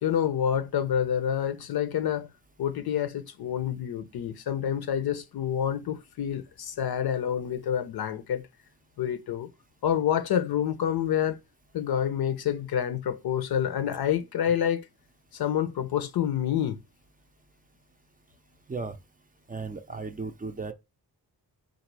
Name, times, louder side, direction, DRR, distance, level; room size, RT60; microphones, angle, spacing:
voice 1, 0.0-2.3 2.6-8.5 9.0-9.5 9.8-11.4 11.7-14.8 15.3-16.8, left 9 dB, 75° left, 0.6 m, -28 dB
voice 2, 19.5-20.7, right 4 dB, 25° right, 0.4 m, -35 dB
4.0 x 2.4 x 4.6 m
cardioid pair, 85°, 38 cm